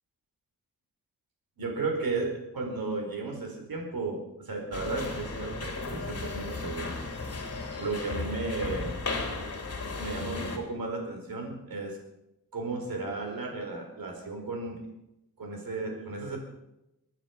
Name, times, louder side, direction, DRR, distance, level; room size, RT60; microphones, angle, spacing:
voice 1, 1.6-6.9 7.8-9.0 10.0-12.0 12.5-14.9 15.4-16.4, right 3 dB, 80° right, 2 dB, 4.6 m, -34 dB
sound 1, 4.7-10.6, left 3 dB, 45° left, 3.0 m, -35 dB
24.0 x 9.8 x 5.9 m, 0.91 s
wide cardioid pair, 140°, 35 cm